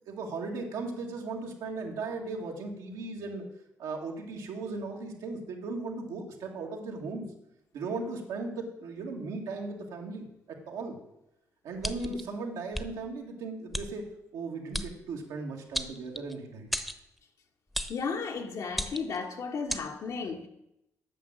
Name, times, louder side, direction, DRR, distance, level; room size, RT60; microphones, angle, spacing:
voice 1, 0.1-3.4 3.8-7.2 7.7-11.0 11.6-16.7, right 3 dB, 85° right, 1.9 m, -37 dB
sound 1, 11.8-12.2 12.7-12.9 13.7-13.9 14.7-14.9 15.7-16.3 16.7-17.0 17.7-18.0 18.7-19.2 19.7-19.9, equal, ahead, 0.9 m, -33 dB
voice 2, 17.9-20.5, left 5 dB, 65° left, 1.5 m, -34 dB
9.1 x 6.2 x 7.4 m
supercardioid pair, 65°, 6 cm